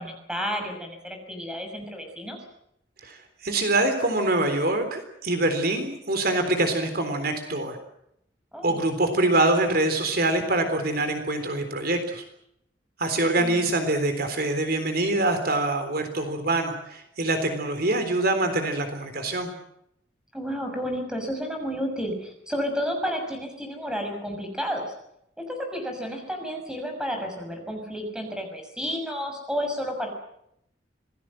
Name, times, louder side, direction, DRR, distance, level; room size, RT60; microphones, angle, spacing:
voice 1, 0.0-2.4 8.5-8.8 13.3-13.7 20.3-24.9 25.4-30.1, equal, 5° right, 4 dB, 6.3 m, -31 dB
voice 2, 3.0-7.8 8.6-12.2 13.0-19.5, right 2 dB, 55° right, 7 dB, 3.7 m, -25 dB
27.0 x 19.5 x 7.7 m, 0.76 s
head